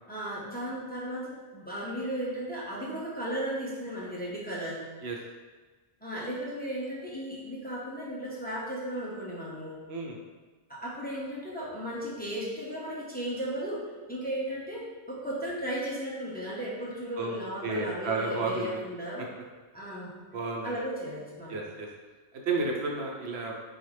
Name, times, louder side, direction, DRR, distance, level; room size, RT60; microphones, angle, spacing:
voice 1, 0.1-4.8 6.0-9.8 10.7-19.2 19.7-20.2 20.6-21.6 22.6-22.7, right 1 dB, 10° left, -7 dB, 0.9 m, -35 dB
voice 2, 17.6-18.8 20.3-20.7 21.5-21.9 22.5-23.5, right 3 dB, 75° right, 0 dB, 0.9 m, -31 dB
4.1 x 3.9 x 3.2 m, 1.3 s
omnidirectional pair, 1.1 m